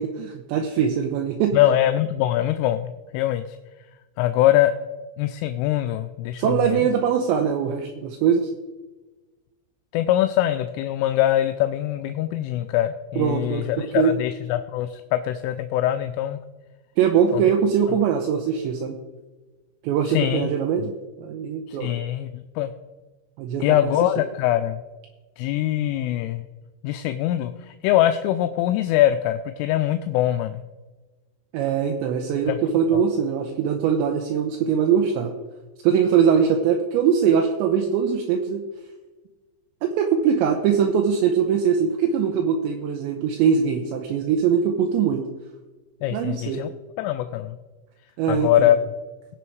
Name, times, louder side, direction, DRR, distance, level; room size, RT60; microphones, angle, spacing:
voice 1, 0.0-1.6 6.4-8.5 13.2-13.7 13.9-14.1 17.0-19.0 19.8-20.8 21.2-21.9 23.4-23.9 31.5-35.3 35.8-38.6 39.8-45.2 46.1-46.6 48.2-48.7, right 7 dB, 80° right, 4 dB, 2.6 m, -22 dB
voice 2, 1.5-3.6 4.2-4.7 5.2-6.9 9.9-16.4 17.3-17.4 20.1-20.5 20.8-20.9 21.7-22.7 23.6-24.8 25.4-26.4 26.8-30.6 32.5-32.6 32.9-33.0 46.0-46.7 47.0-47.6 48.3-48.8, left 13 dB, 85° left, 9 dB, 2.9 m, -23 dB
18.0 x 6.3 x 4.6 m, 1.2 s
omnidirectional pair, 5.9 m